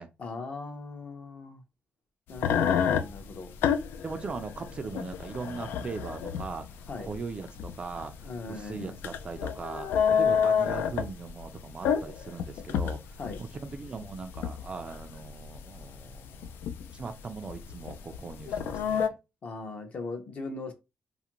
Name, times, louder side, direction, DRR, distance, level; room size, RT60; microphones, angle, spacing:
voice 1, 0.2-1.6 2.3-3.5 6.9-7.1 8.2-9.0 13.2-13.4 19.4-20.7, left 3 dB, 40° left, 0.6 m, -39 dB
sound 1, 2.3-19.1, left 7 dB, 80° left, 0.3 m, -30 dB
voice 2, 4.0-6.7 7.0-8.1 8.5-16.6 16.9-19.2, right 4 dB, 30° right, 0.3 m, -39 dB
2.5 x 2.4 x 2.9 m
cardioid pair, 150°, 4 cm